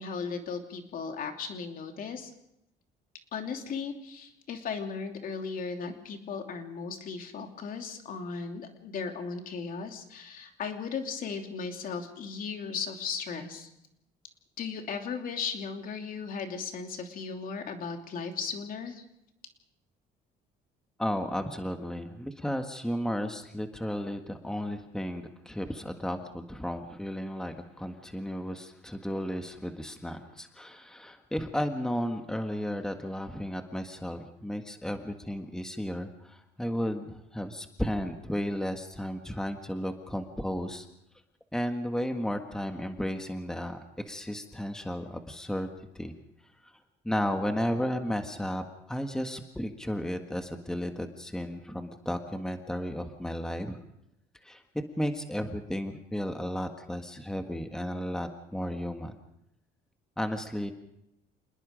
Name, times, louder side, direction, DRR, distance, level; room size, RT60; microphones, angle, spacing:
voice 1, 0.0-2.3 3.3-13.7 14.6-19.0, left 5 dB, 55° left, 4 dB, 3.0 m, -36 dB
voice 2, 21.0-40.9 41.5-45.7 45.9-46.1 46.6-46.7 47.0-53.8 54.4-54.6 55.0-59.2 60.2-60.7, equal, 5° left, 5 dB, 1.7 m, -34 dB
27.5 x 20.0 x 5.2 m, 0.82 s
cardioid pair, 110°, 17 cm